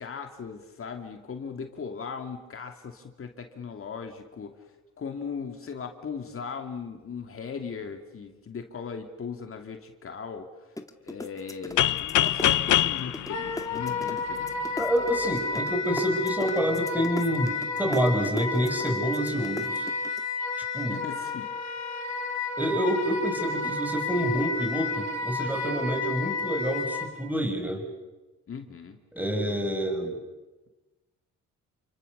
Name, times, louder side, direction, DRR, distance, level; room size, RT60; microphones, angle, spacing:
voice 1, 0.0-4.7 5.0-10.7 11.0-14.5 20.9-21.5 28.5-29.0, left 6 dB, 45° left, 5 dB, 2.8 m, -38 dB
sound 1, 10.8-13.3 13.6-20.2, left 2 dB, 10° left, 2.2 m, -37 dB
sound 2, 11.8-14.5, left 13 dB, 80° left, 1.0 m, -25 dB
Wind instrument woodwind instrument, 13.3-27.1, left 3 dB, 60° left, 4.7 m, -31 dB
voice 2, 14.8-19.9 20.7-21.0 22.6-27.9 29.1-30.2, equal, 5° right, 3 dB, 6.7 m, -28 dB
29.5 x 25.0 x 6.9 m, 1.1 s
cardioid pair, 90°, 30 cm